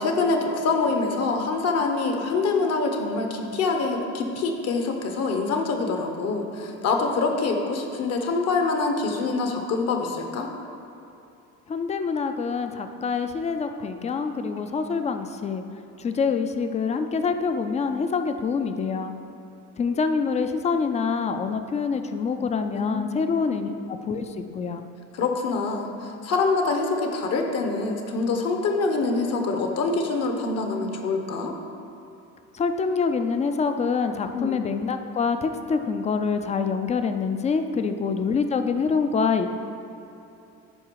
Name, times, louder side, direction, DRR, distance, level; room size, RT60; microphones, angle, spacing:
voice 1, 0.0-10.5 14.0-14.1 22.7-23.3 23.6-23.8 25.1-31.5 34.3-34.6 37.9-38.0, left 3 dB, 55° left, 3 dB, 1.0 m, -25 dB
voice 2, 11.7-15.6 16.0-19.1 19.8-24.2 24.5-24.8 32.5-39.5, left 5 dB, 25° left, 8 dB, 0.3 m, -26 dB
10.5 x 4.8 x 4.6 m, 2.8 s
cardioid pair, 160°, 31 cm